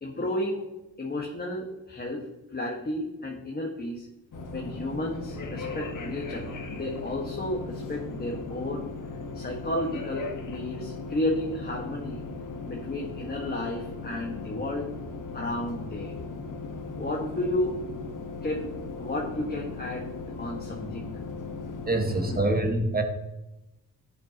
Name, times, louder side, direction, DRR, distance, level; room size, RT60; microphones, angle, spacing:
voice 1, 0.0-0.7 1.0-4.1 4.5-8.9 9.3-12.2 12.7-14.9 15.3-16.2 17.0-17.8 18.4-18.7 19.0-21.3 22.3-22.6, left 1 dB, 25° left, -1 dB, 1.8 m, -32 dB
sound 1, 4.3-22.4, left 3 dB, 55° left, 1.6 m, -38 dB
voice 2, 21.9-23.0, right 2 dB, 25° right, 4 dB, 1.8 m, -25 dB
12.0 x 8.3 x 3.1 m, 0.95 s
cardioid pair, 65°, 37 cm